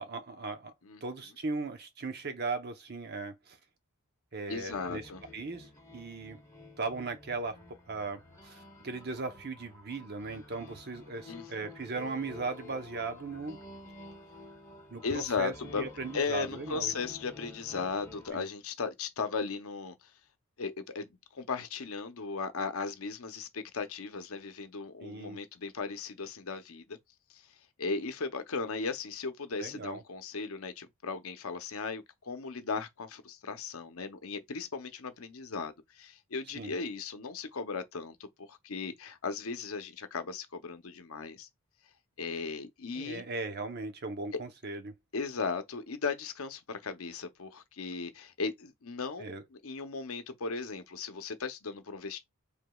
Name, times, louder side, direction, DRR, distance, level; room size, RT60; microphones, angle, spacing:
voice 1, 0.0-0.7 1.0-3.6 4.3-6.4 6.8-7.6 7.9-13.6 14.9-17.0 18.3-18.5 25.0-25.4 29.6-30.0 36.5-36.7 42.9-44.9 49.2-49.4, right 3 dB, 45° right, 0.8 m, -38 dB
voice 2, 4.5-5.2 11.3-11.4 15.0-15.8 16.1-19.9 20.6-21.1 21.3-27.0 27.3-27.4 27.8-41.5 42.2-43.2 44.3-44.4 45.1-49.3 49.6-52.2, left 4 dB, 70° left, 0.7 m, -36 dB
sound 1, 4.7-18.3, left 3 dB, 15° left, 1.5 m, -51 dB
4.9 x 3.4 x 2.3 m
head